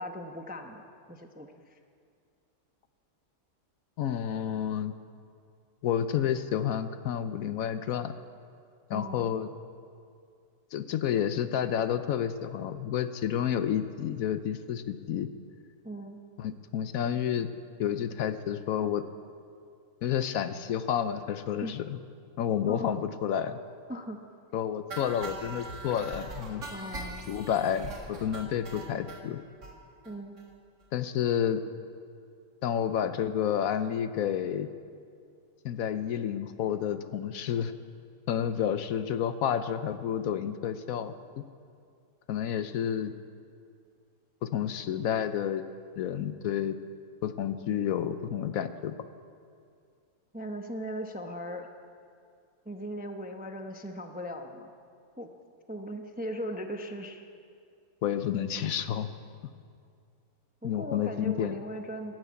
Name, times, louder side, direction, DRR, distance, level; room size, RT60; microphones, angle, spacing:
voice 1, 0.0-1.8 8.9-9.3 15.8-16.2 21.6-21.7 22.7-23.1 23.9-24.2 26.7-27.4 30.0-30.4 50.3-51.7 52.7-54.7 55.2-55.3 55.7-57.2 60.6-62.2, equal, 10° right, 5 dB, 0.5 m, -38 dB
voice 2, 4.0-4.9 5.8-8.1 8.9-9.5 10.7-15.3 16.4-17.5 17.8-19.1 20.0-22.0 22.4-23.6 24.5-26.6 27.3-29.4 30.9-31.6 32.6-34.7 35.6-37.7 38.3-41.4 42.3-43.1 44.4-45.6 46.0-46.8 47.2-49.0 58.0-59.1 60.6-61.6, left 9 dB, 70° left, 12 dB, 1.0 m, -30 dB
sound 1, 24.9-29.2 29.6-29.7 30.1-30.2 30.4-30.5 30.8-30.9, right 2 dB, 50° right, 2.1 m, -41 dB
13.0 x 12.5 x 8.5 m, 2.3 s
omnidirectional pair, 1.6 m